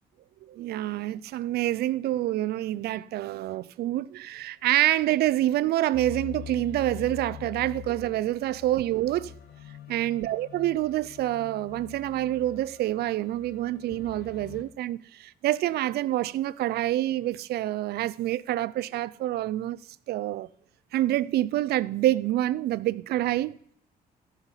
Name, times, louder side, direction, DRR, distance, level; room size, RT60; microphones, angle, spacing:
voice 1, 0.4-9.3 9.9-19.8 20.1-20.5 20.9-23.6, right 14 dB, 85° right, 0.4 m, -27 dB
sound 1, 5.9-14.6, left 11 dB, 90° left, 1.3 m, -44 dB
12.5 x 5.7 x 7.2 m
cardioid pair, 115°, 16 cm